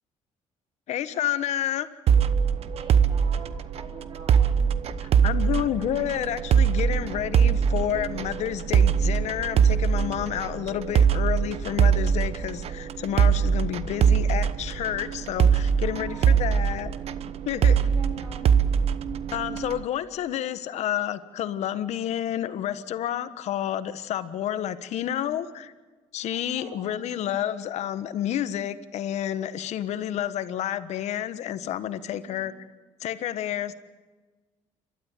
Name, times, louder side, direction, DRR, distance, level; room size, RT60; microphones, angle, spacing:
voice 1, 0.9-1.9 5.0-16.9 17.4-17.8 19.3-25.7 26.1-32.5 33.0-33.7, left 11 dB, 70° left, 12 dB, 1.4 m, -30 dB
sound 1, 2.1-19.8, right 7 dB, 60° right, 1.0 m, -22 dB
voice 2, 2.7-4.7 15.8-17.2 17.6-18.5 26.3-27.1 32.1-32.5, right 2 dB, 40° right, 3 dB, 7.7 m, -47 dB
29.0 x 13.0 x 9.1 m, 1.3 s
cardioid pair, 100°, 12 cm